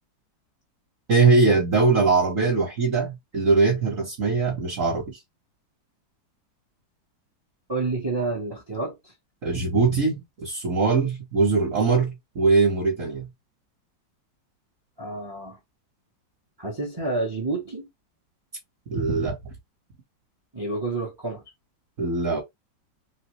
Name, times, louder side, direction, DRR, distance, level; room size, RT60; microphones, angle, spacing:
voice 1, 1.1-5.2 9.4-13.3 18.9-19.4 22.0-22.4, right 4 dB, 50° right, 1.2 m, -21 dB
voice 2, 7.7-9.1 15.0-15.6 16.6-17.9 20.5-21.4, right 3 dB, 30° right, 0.4 m, -29 dB
3.1 x 2.7 x 3.0 m
omnidirectional pair, 2.0 m